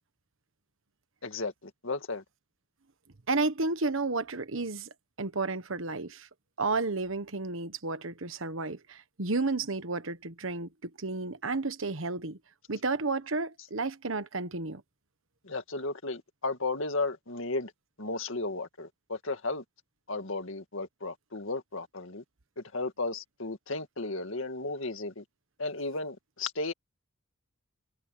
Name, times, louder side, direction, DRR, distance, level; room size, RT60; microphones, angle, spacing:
voice 1, 1.8-2.2 15.5-17.7 18.0-19.6 20.1-22.2 22.7-25.2 25.6-26.7, left 3 dB, 70° left, 2.1 m, -34 dB
voice 2, 3.3-4.9 5.2-6.3 6.6-12.4 12.7-14.8, right 3 dB, 70° right, 1.3 m, -32 dB
head